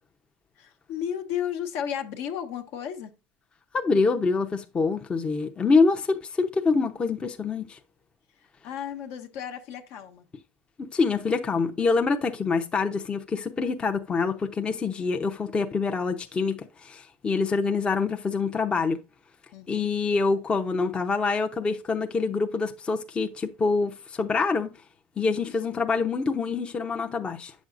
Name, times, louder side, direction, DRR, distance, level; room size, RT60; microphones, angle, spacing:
voice 1, 0.6-3.1 8.6-10.2 19.5-19.9, left 9 dB, 65° left, 1.1 m, -33 dB
voice 2, 3.7-7.8 10.8-19.0 19.7-24.7 25.2-27.5, left 4 dB, 20° left, 0.7 m, -25 dB
8.8 x 6.2 x 2.5 m
supercardioid pair, 125°, 5 cm